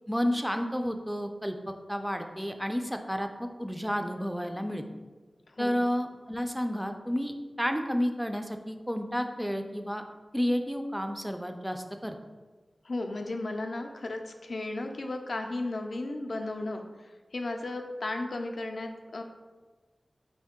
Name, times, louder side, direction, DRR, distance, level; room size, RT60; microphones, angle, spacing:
voice 1, 0.1-4.8 5.6-10.0 10.3-12.2, equal, 5° right, 6 dB, 0.3 m, -31 dB
voice 2, 5.5-5.8 12.8-16.8 17.3-19.2, left 2 dB, 70° left, 4 dB, 0.4 m, -34 dB
4.4 x 2.6 x 3.6 m, 1.3 s
wide cardioid pair, 85°, 0 cm